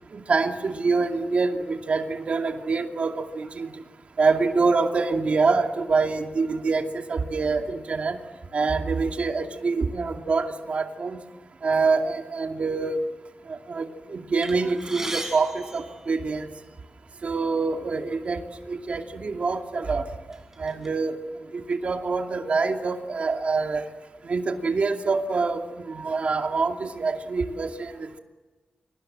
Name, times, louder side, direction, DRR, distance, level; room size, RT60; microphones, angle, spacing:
voice 1, 0.1-3.7 4.2-8.2 8.5-11.2 11.6-13.0 13.5-16.5 17.2-18.4 18.7-20.0 20.6-21.2 21.5-23.8 24.2-28.2, right 4 dB, 50° right, 4 dB, 2.4 m, -25 dB
sound 1, 14.4-16.8 17.6-17.7 18.0-18.2 19.1-19.2 19.7-20.9, right 2 dB, 15° right, 4.7 m, -37 dB
29.0 x 24.5 x 7.7 m, 1.3 s
wide cardioid pair, 150°, 3 cm